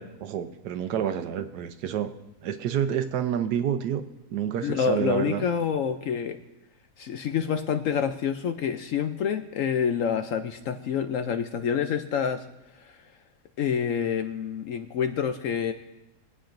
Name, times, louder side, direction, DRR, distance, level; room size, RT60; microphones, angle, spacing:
voice 1, 0.0-2.1 2.4-4.0 4.3-5.4, right 9 dB, 80° right, 9 dB, 1.3 m, -28 dB
voice 2, 4.6-6.4 7.0-12.5 12.7-13.0 13.6-15.7, left 7 dB, 65° left, 8 dB, 0.8 m, -27 dB
23.5 x 8.8 x 2.6 m, 0.97 s
omnidirectional pair, 1.7 m